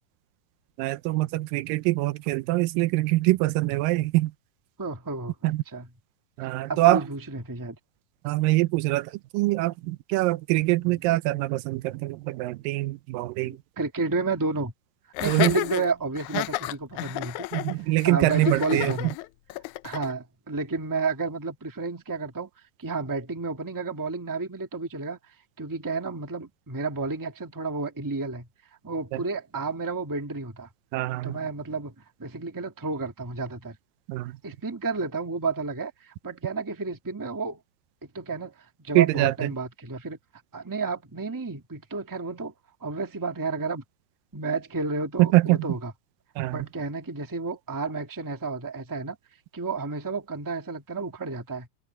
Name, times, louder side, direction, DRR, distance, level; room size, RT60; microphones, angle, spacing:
voice 1, 0.8-4.3 5.4-5.6 6.4-7.0 8.2-13.6 15.3-15.5 17.5-19.1 29.1-29.2 30.9-31.4 34.1-34.4 39.0-39.5 45.2-45.7 46.4-46.7, right 19 dB, 80° right, 2.3 m, -24 dB
voice 2, 4.8-5.9 6.4-7.8 13.4-14.7 15.2-17.5 17.8-19.1 19.8-22.5 22.8-25.2 25.6-28.5 28.8-30.7 31.2-31.9 32.2-33.8 34.4-37.6 38.0-38.5 38.8-40.2 40.5-42.5 42.8-43.8 44.3-45.9 46.5-49.2 49.5-51.7, right 3 dB, 10° right, 1.0 m, -31 dB
Laughter, 15.2-20.1, left 18 dB, 90° left, 1.7 m, -32 dB
omnidirectional pair, 4.1 m